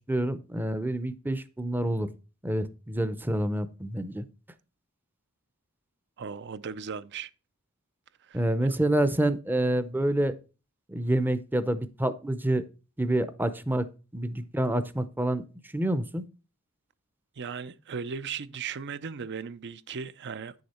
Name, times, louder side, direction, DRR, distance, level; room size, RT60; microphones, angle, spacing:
voice 1, 0.1-2.1 2.4-4.2 8.3-10.3 10.9-12.6 13.0-15.4 15.7-16.2, right 1 dB, 10° right, 0.6 m, -27 dB
voice 2, 6.2-7.3 8.3-8.8 17.4-20.5, right 6 dB, 55° right, 0.5 m, -37 dB
9.5 x 6.6 x 4.3 m
head